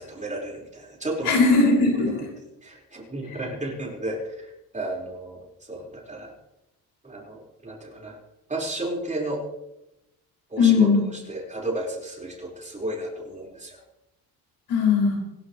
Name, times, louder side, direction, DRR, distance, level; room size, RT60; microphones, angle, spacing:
voice 1, 0.0-1.3 2.1-2.2 2.6-4.3 4.7-5.4 5.7-6.3 7.0-8.2 8.5-9.4 10.5-10.9 11.3-13.8, right 1 dB, 20° right, -3 dB, 5.1 m, -33 dB
voice 2, 1.2-2.3 10.6-11.0 14.7-15.2, left 4 dB, 75° left, -2 dB, 6.4 m, -19 dB
26.0 x 12.0 x 3.3 m, 0.92 s
cardioid pair, 105°, 38 cm